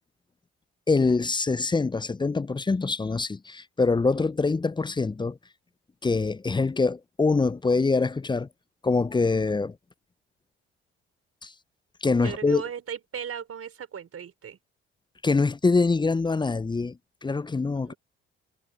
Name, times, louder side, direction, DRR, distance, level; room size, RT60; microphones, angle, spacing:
voice 1, 0.9-5.4 6.0-8.5 8.8-9.8 11.4-11.5 12.0-12.6 15.2-17.9, left 3 dB, 15° left, 0.6 m, -24 dB
voice 2, 12.2-14.6 17.7-18.0, right 8 dB, 50° right, 5.0 m, -37 dB
hypercardioid pair, 50°, 30 cm